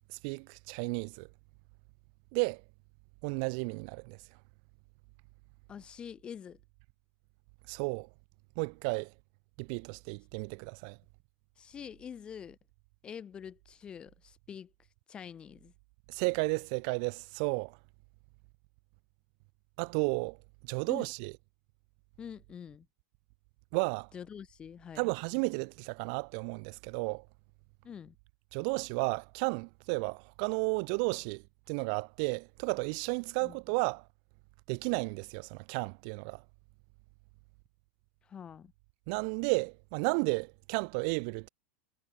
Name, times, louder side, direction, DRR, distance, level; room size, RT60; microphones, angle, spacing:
voice 1, 0.2-1.3 2.3-2.6 3.2-4.2 7.7-8.1 8.6-9.1 9.6-11.0 16.1-17.8 19.8-20.4 20.6-21.3 23.7-24.1 25.0-27.2 28.5-34.0 34.7-36.4 39.1-41.5, right 39 dB, 35° right, 0.8 m, -33 dB
voice 2, 5.7-6.6 11.6-12.6 13.0-14.7 15.1-15.7 20.9-21.1 22.2-22.9 24.1-25.1 27.8-28.1 33.4-33.6 38.2-38.7, left 8 dB, 15° left, 1.5 m, -45 dB
supercardioid pair, 175°, 7 cm